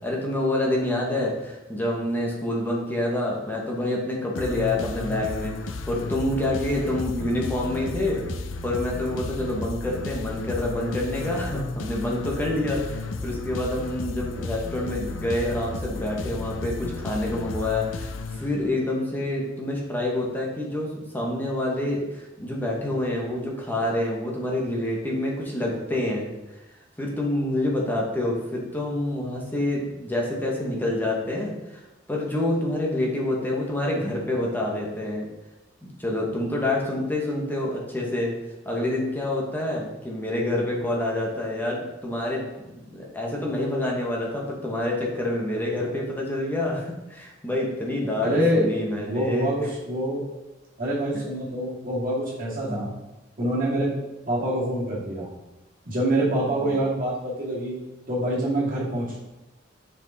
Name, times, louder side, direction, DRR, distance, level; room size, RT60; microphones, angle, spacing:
voice 1, 0.0-8.2 8.6-26.3 27.0-31.8 32.1-35.3 35.8-38.3 38.6-42.4 42.7-49.5 52.7-52.9 56.4-56.7, left 1 dB, 10° left, -3 dB, 1.1 m, -27 dB
sound 1, 4.3-18.9, left 3 dB, 85° left, 0.5 m, -33 dB
voice 2, 48.2-48.7 49.1-50.2 50.8-52.9 53.4-53.9 54.3-55.3 55.9-57.8 58.1-59.2, right 1 dB, 45° right, -7 dB, 2.2 m, -25 dB
5.2 x 5.1 x 4.0 m, 1.0 s
head